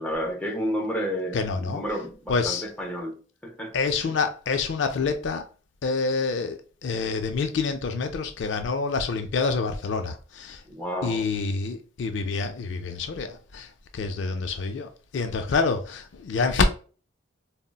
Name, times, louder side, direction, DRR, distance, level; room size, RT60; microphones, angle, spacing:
voice 1, 0.0-3.2 3.4-3.7 4.0-4.1 10.7-11.2, equal, 5° left, 0.6 m, -31 dB
voice 2, 1.3-1.8 2.3-2.7 3.7-5.5 5.8-10.6 11.0-16.6, left 4 dB, 65° left, 0.4 m, -27 dB
3.8 x 2.0 x 2.2 m
head